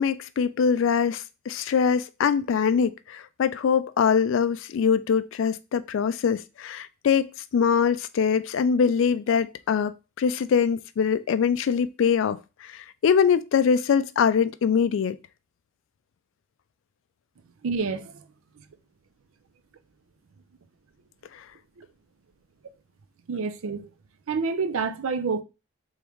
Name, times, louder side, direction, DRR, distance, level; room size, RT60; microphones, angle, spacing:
voice 1, 0.0-9.9 10.2-15.2 21.3-21.4, left 6 dB, 65° left, 0.3 m, -23 dB
voice 2, 17.6-18.2 21.8-21.9 23.3-23.9 24.3-25.4, right 4 dB, 80° right, 0.5 m, -28 dB
3.5 x 3.4 x 3.0 m
head